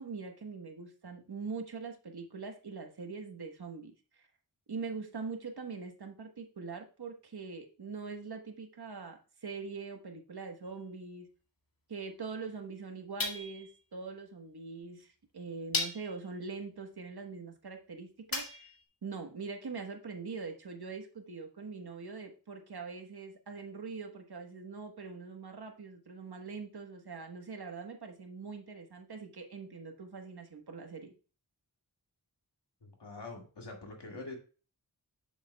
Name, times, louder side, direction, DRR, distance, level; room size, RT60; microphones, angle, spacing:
voice 1, 0.0-4.3 4.7-11.3 11.9-18.7 19.0-31.1, right 4 dB, 65° right, 4 dB, 1.3 m, -43 dB
sound 1, 10.6-10.8 13.2-13.8 14.8-14.9 15.7-16.3 18.3-18.8, left 3 dB, 55° left, 1.9 m, -36 dB
voice 2, 32.8-34.4, left 3 dB, 90° left, 1 dB, 2.1 m, -45 dB
8.5 x 6.9 x 2.3 m, 0.36 s
wide cardioid pair, 75°, 41 cm